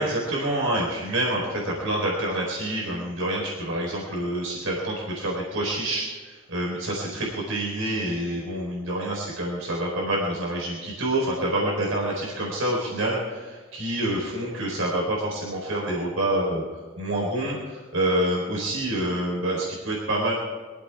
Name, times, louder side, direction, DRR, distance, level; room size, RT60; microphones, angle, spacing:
voice 1, 0.0-16.6 17.0-20.3, right 1 dB, 80° right, -3 dB, 4.2 m, -27 dB
23.0 x 15.0 x 3.6 m, 1.4 s
head